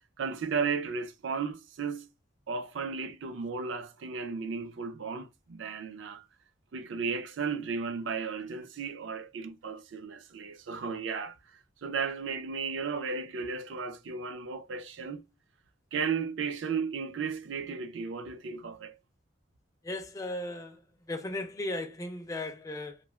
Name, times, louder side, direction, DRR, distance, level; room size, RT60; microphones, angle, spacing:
voice 1, 0.2-2.1 2.5-6.2 6.7-15.2 15.9-19.0, right 5 dB, 70° right, 0.4 m, -34 dB
voice 2, 19.8-20.8 21.1-23.0, left 2 dB, 15° left, 0.3 m, -36 dB
3.1 x 2.4 x 2.2 m
head